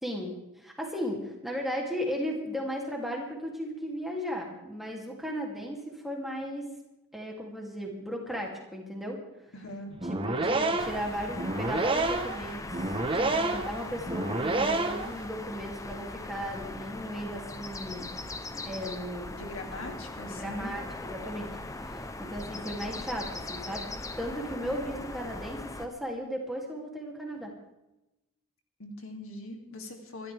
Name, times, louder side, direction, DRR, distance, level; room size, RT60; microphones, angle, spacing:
voice 1, 0.0-6.7 7.1-9.2 10.2-18.2 18.5-19.3 19.8-19.9 20.2-27.5, equal, ahead, -1 dB, 2.9 m, -36 dB
voice 2, 9.5-9.9 19.4-20.8 28.8-30.3, left 1 dB, 65° left, 2 dB, 2.8 m, -41 dB
sound 1, 9.9-15.2, right 2 dB, 25° right, 1.2 m, -29 dB
sound 2, 10.8-25.9, left 2 dB, 15° left, 0.7 m, -40 dB
25.5 x 13.0 x 3.5 m, 0.94 s
head